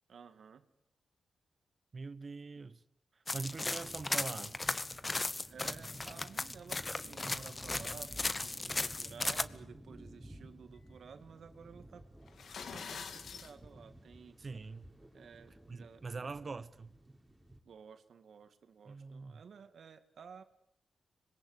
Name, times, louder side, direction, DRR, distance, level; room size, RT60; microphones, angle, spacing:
voice 1, 0.1-0.7 2.6-2.7 5.5-12.0 12.7-14.4 15.1-16.0 17.7-20.4, right 6 dB, 70° right, 2.1 m, -54 dB
voice 2, 1.9-2.8 3.1-4.5 14.4-14.9 15.7-16.9 18.8-19.4, right 4 dB, 45° right, 1.1 m, -43 dB
sound 1, 3.3-9.4, left 2 dB, 30° left, 1.1 m, -36 dB
sound 2, 3.3-17.6, right 1 dB, 15° right, 4.2 m, -54 dB
sound 3, 12.3-13.5, left 6 dB, 75° left, 1.7 m, -45 dB
25.0 x 21.5 x 8.1 m
cardioid pair, 80°, 0 cm